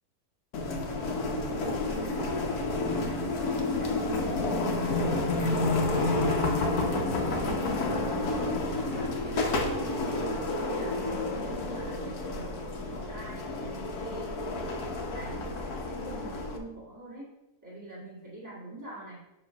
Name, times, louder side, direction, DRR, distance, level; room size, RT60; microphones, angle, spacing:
sound 1, 0.5-16.6, left 2 dB, 85° left, 1.4 m, -30 dB
voice 1, 1.3-2.4 2.8-6.3 6.6-11.0 11.4-14.8 15.1-17.3 17.6-19.2, right 2 dB, 10° right, -6 dB, 2.1 m, -45 dB
7.5 x 3.1 x 5.7 m, 0.95 s
omnidirectional pair, 1.5 m